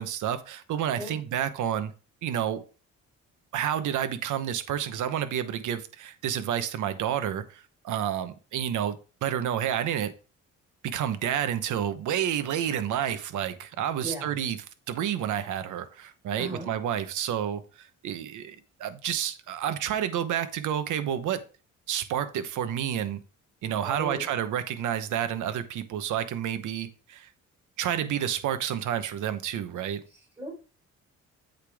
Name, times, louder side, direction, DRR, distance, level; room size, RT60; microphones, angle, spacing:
voice 1, 0.0-1.9 2.2-2.6 3.5-10.1 10.8-14.6 14.9-21.4 21.9-23.2 23.6-27.3 27.8-30.0, right 10 dB, 80° right, 1.0 m, -30 dB
voice 2, 14.0-14.4 16.3-16.7 23.8-24.3 30.1-30.5, right 2 dB, 15° right, 4.3 m, -37 dB
8.2 x 5.0 x 3.5 m
cardioid pair, 90°, 30 cm